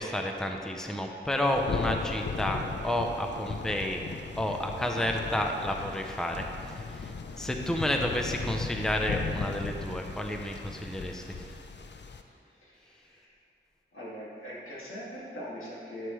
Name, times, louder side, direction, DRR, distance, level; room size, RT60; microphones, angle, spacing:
voice 1, 0.0-4.0 4.4-11.5, left 1 dB, 5° left, 3 dB, 0.6 m, -31 dB
Thunder, 1.4-12.2, left 4 dB, 60° left, 0.5 m, -37 dB
voice 2, 12.6-13.3 13.9-16.1, equal, 90° left, -7 dB, 2.0 m, -42 dB
11.5 x 6.2 x 3.1 m, 2.5 s
wide cardioid pair, 65°, 21 cm